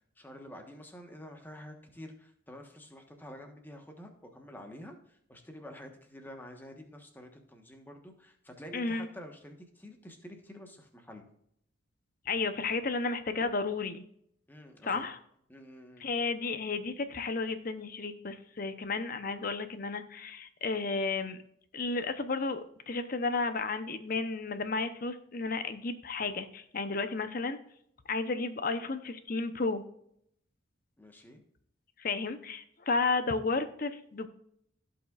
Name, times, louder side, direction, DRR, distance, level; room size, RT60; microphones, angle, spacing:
voice 1, 0.2-11.3 14.5-15.1 15.5-16.1 31.0-31.4, equal, 10° left, 3 dB, 1.2 m, -49 dB
voice 2, 8.7-9.1 12.3-14.0 14.8-15.2 16.0-21.4 21.7-27.6 28.1-29.8 32.0-34.3, left 3 dB, 45° left, 10 dB, 0.7 m, -32 dB
15.5 x 5.7 x 2.4 m, 0.70 s
head